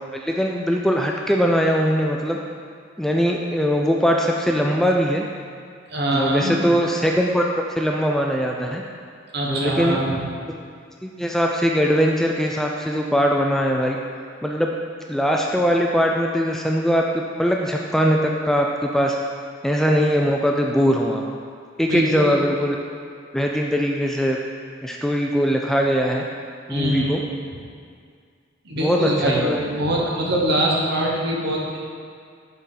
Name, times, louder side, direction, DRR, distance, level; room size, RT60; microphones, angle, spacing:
voice 1, 0.1-2.4 3.0-5.3 6.1-7.4 7.8-8.8 9.5-10.0 11.0-14.0 14.4-14.7 15.1-17.0 17.4-19.2 19.6-21.2 21.8-22.8 23.3-24.4 24.8-26.2 26.7-27.2 28.8-29.6, equal, ahead, 0 dB, 0.3 m, -21 dB
voice 2, 5.9-6.5 9.3-10.2 21.9-22.4 26.7-27.1 28.6-31.8, right 1 dB, 60° right, -3 dB, 1.2 m, -23 dB
8.1 x 4.2 x 3.9 m, 2.1 s
head